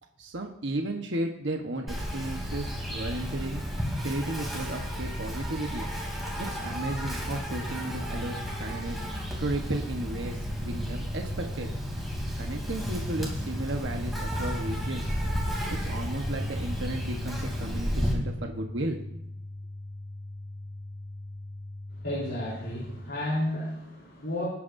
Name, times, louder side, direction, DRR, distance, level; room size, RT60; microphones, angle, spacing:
voice 1, 0.2-3.6 4.0-5.8 6.3-9.0 9.4-11.7 12.4-15.0 15.7-19.1, right 1 dB, 65° right, 2 dB, 1.2 m, -34 dB
Insect, 1.9-18.1, equal, ahead, 3.2 m, -33 dB
sound 1, 12.9-22.9, left 1 dB, 35° left, 4.8 m, -41 dB
voice 2, 21.9-24.4, left 1 dB, 60° left, -7 dB, 3.8 m, -32 dB
19.5 x 9.6 x 2.7 m, 0.79 s
head